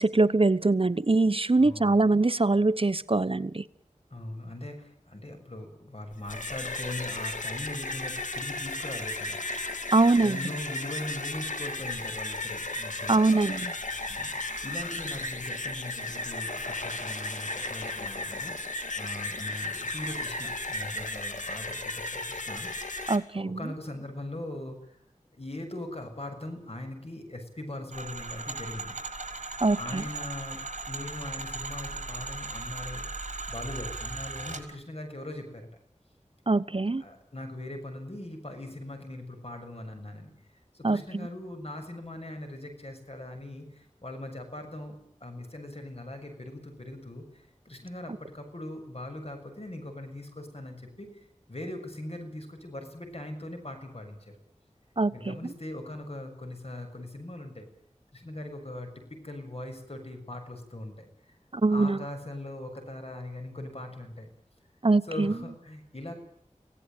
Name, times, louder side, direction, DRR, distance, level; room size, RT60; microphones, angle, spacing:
voice 1, 0.0-3.6 9.9-10.4 13.1-13.7 23.1-23.7 29.6-30.0 36.5-37.0 40.8-41.3 55.0-55.5 61.5-62.0 64.8-65.3, right 3 dB, 45° right, 15 dB, 0.9 m, -23 dB
voice 2, 1.5-2.0 4.1-9.4 10.2-13.2 14.1-14.4 14.6-25.0 25.3-29.0 29.3-29.4 29.8-30.6 30.9-33.0 33.5-35.7 37.0-40.3 40.7-45.0 45.2-51.1 51.5-54.2 55.1-57.7 58.1-61.1 61.7-64.3 65.1-66.2, left 1 dB, 50° left, 5 dB, 6.8 m, -40 dB
sound 1, 6.1-23.2, left 2 dB, 80° left, 2.6 m, -35 dB
sound 2, 27.9-34.6, right 3 dB, 65° right, 5.2 m, -37 dB
26.0 x 17.0 x 9.1 m, 0.70 s
wide cardioid pair, 45°, 13 cm